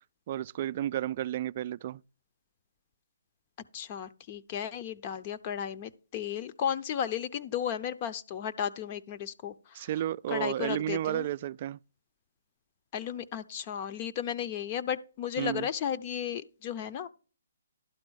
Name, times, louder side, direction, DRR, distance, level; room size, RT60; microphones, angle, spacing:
voice 1, 0.3-2.0 9.7-11.8 15.4-15.7, right 12 dB, 40° right, 0.3 m, -32 dB
voice 2, 3.7-9.9 10.3-11.3 12.9-17.1, left 9 dB, 35° left, 0.7 m, -34 dB
11.5 x 3.9 x 6.3 m
hypercardioid pair, 145°, 0 cm